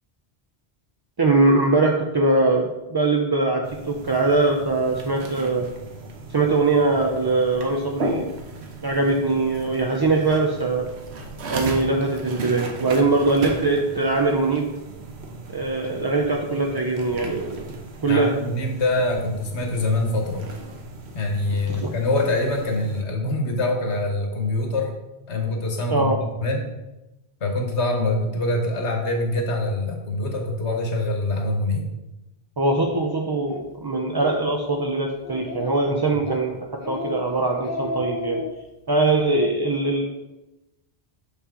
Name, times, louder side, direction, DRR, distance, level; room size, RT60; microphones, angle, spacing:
voice 1, 1.2-5.7 6.3-8.3 8.8-10.9 11.5-14.7 15.5-17.6 18.0-18.3 21.7-21.9 25.9-26.2 32.6-38.4 38.9-40.1, right 3 dB, 35° right, 1 dB, 0.4 m, -22 dB
sound 1, 3.6-23.0, right 2 dB, 70° right, 1.1 m, -36 dB
voice 2, 18.0-20.5 21.1-24.9 25.3-26.1 26.4-26.7 27.4-31.9 35.9-36.1, left 2 dB, 80° left, 3 dB, 1.4 m, -24 dB
Speech, 33.5-33.6 34.1-34.4 34.8-34.9 35.2-35.8 36.3-36.4 36.8-37.2 37.5-38.5, left 2 dB, 60° left, 0.8 m, -32 dB
6.5 x 5.6 x 3.7 m, 0.97 s
omnidirectional pair, 1.1 m